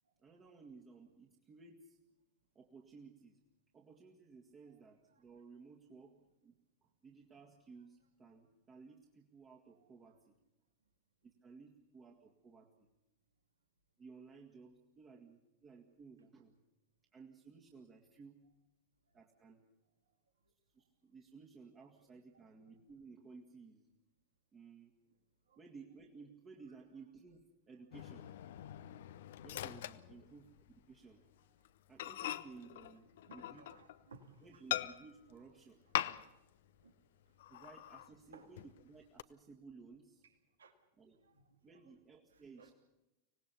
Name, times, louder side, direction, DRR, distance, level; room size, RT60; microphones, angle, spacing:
voice 1, 0.2-2.0 2.6-3.4 3.7-6.2 6.4-6.6 6.8-10.4 11.2-12.9 14.0-16.6 17.1-18.4 19.1-19.6 20.7-23.9 24.5-24.9 25.6-28.3 29.4-31.2 31.9-33.7 34.4-35.8 37.5-40.2 41.0-41.2 41.6-42.7, right 4 dB, 25° right, 0 dB, 2.1 m, -57 dB
Microwave oven, 27.9-30.8 31.1-31.3 31.7-31.8 32.0-34.1 34.7-35.3 35.9-36.5 36.8-36.9 37.4-38.1 38.6-39.2, left 13 dB, 55° left, 0.7 m, -42 dB
voice 2, 33.2-34.6 36.3-36.4 36.8-36.9 38.3-38.5 40.6-40.7 41.2-41.8 42.3-42.7, right 4 dB, 70° right, 7 dB, 1.9 m, -61 dB
25.0 x 18.5 x 6.9 m, 0.94 s
figure-of-eight pair, 90°, 0 cm